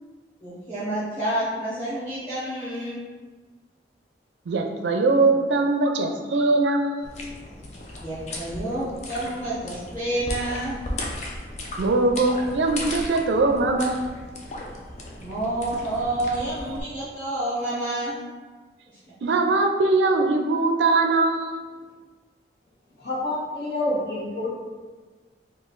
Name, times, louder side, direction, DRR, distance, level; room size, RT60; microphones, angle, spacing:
voice 1, 0.4-3.0 8.0-10.8 15.2-18.1, right 1 dB, 10° left, -12 dB, 0.8 m, -29 dB
voice 2, 4.5-7.0 11.8-14.0 19.2-21.5, right 3 dB, 85° right, 4 dB, 0.4 m, -21 dB
sound 1, 7.0-16.8, left 1 dB, 40° left, 0.4 m, -36 dB
voice 3, 23.0-24.5, left 1 dB, 70° left, -7 dB, 1.0 m, -27 dB
3.0 x 2.3 x 3.7 m, 1.4 s
head